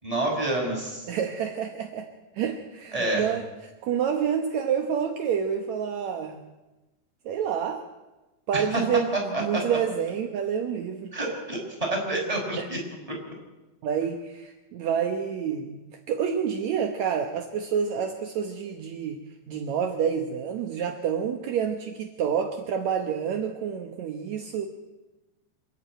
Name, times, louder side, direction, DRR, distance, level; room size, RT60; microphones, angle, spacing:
voice 1, 0.0-1.1 2.9-3.3 8.5-8.8 9.3-9.6 11.1-12.8 13.2-13.3, right 2 dB, 10° right, -2 dB, 5.5 m, -28 dB
voice 2, 1.1-2.1 2.3-3.5 3.8-6.4 7.3-7.8 8.5-11.1 12.6-12.7 13.8-15.8 16.1-19.2 19.5-24.7, right 7 dB, 70° right, 4 dB, 1.8 m, -28 dB
26.0 x 11.0 x 9.2 m, 1.1 s
omnidirectional pair, 4.6 m